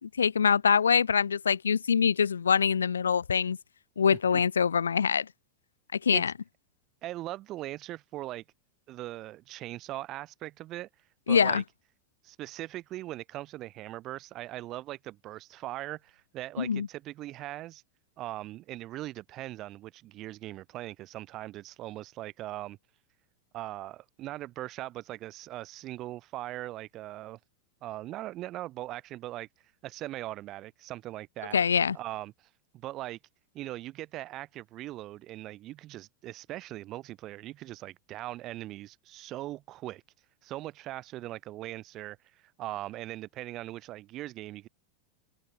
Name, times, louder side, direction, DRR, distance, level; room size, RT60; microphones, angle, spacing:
voice 1, 0.0-3.6 4.0-5.3 6.0-6.3 11.3-11.6 16.6-16.9 31.5-32.0, left 6 dB, 85° left, 0.7 m, -24 dB
voice 2, 4.1-4.4 6.1-6.2 7.0-8.4 8.9-10.9 11.3-11.6 12.2-17.8 18.2-22.8 23.5-27.4 27.8-29.5 29.8-31.6 31.9-32.3 32.7-33.2 33.5-40.0 40.4-42.2 42.6-44.7, right 15 dB, 40° right, 4.3 m, -40 dB
hypercardioid pair, 90°, 0 cm